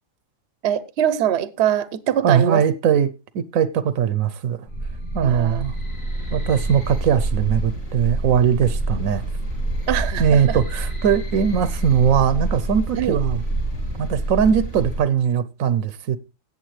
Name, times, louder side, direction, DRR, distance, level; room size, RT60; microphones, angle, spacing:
voice 1, 0.6-2.6 5.2-5.6 9.9-10.6 13.0-13.2, right 10 dB, 55° right, 0.9 m, -23 dB
voice 2, 2.2-4.7 5.1-5.7 6.3-9.2 10.2-13.4 13.9-16.2, right 8 dB, 80° right, 1.1 m, -20 dB
sound 1, 4.7-15.0, right 2 dB, 75° left, 7.7 m, -27 dB
16.5 x 7.2 x 3.2 m
omnidirectional pair, 1.4 m